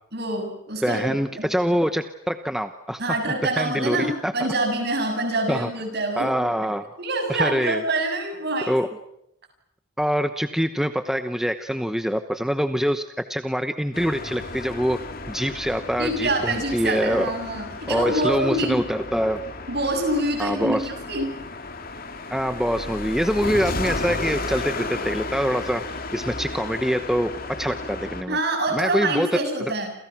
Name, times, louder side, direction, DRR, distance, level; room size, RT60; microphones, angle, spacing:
voice 1, 0.1-1.5 3.0-6.3 7.0-8.8 16.0-18.8 19.7-21.4 28.3-29.9, right 2 dB, 50° right, 5 dB, 7.5 m, -26 dB
voice 2, 0.8-3.0 3.6-4.5 5.5-5.7 6.2-6.9 7.3-7.8 8.7-8.9 10.0-13.0 13.3-15.0 15.3-17.3 17.9-19.4 20.4-20.9 22.3-25.8 26.1-27.3 27.6-28.4 28.7-29.3 29.6-29.7, equal, ahead, 8 dB, 1.0 m, -24 dB
sound 1, 13.9-28.2, left 2 dB, 45° left, 2.7 m, -33 dB
29.0 x 28.5 x 6.1 m, 0.78 s
head